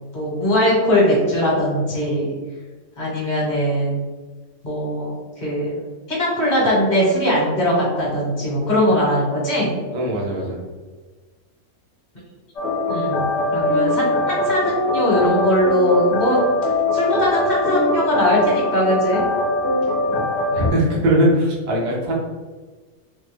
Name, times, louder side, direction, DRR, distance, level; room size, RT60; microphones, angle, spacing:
voice 1, 0.1-2.3 3.0-4.0 4.6-9.8 12.9-13.3 13.5-16.4 16.9-19.2, equal, 35° left, -5 dB, 1.2 m, -20 dB
voice 2, 9.9-10.6 20.1-20.2 20.5-22.1, right 1 dB, 45° right, -3 dB, 0.6 m, -20 dB
sound 1, 12.6-20.7, left 2 dB, 55° left, 1.0 m, -22 dB
3.2 x 2.2 x 3.4 m, 1.3 s
omnidirectional pair, 1.5 m